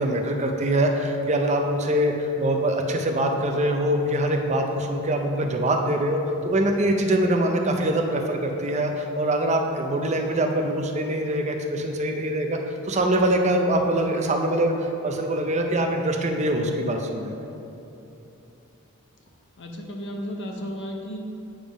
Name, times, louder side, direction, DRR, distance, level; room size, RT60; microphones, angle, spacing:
voice 1, 0.0-12.6 12.8-14.7 15.0-17.4, right 1 dB, 30° right, 3 dB, 0.5 m, -23 dB
voice 2, 19.6-21.2, equal, 55° left, 1 dB, 0.8 m, -33 dB
8.8 x 3.5 x 5.1 m, 2.9 s
head